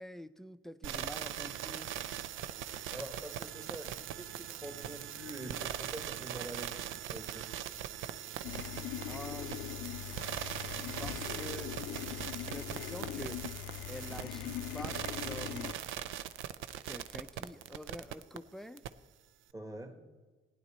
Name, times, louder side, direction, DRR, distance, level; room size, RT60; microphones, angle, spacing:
voice 1, 0.0-1.9 9.1-9.6 11.0-11.8 12.4-13.4 13.9-15.8 16.8-18.8, equal, ahead, 13 dB, 0.5 m, -46 dB
sound 1, 0.8-18.4 18.8-18.9, right 11 dB, 85° right, 0.5 m, -41 dB
voice 2, 2.9-7.4 19.5-19.9, right 1 dB, 15° right, 6 dB, 1.6 m, -45 dB
sound 2, 8.4-15.7, left 12 dB, 80° left, 0.5 m, -41 dB
15.5 x 9.9 x 4.3 m, 1.3 s
cardioid pair, 90°, 20 cm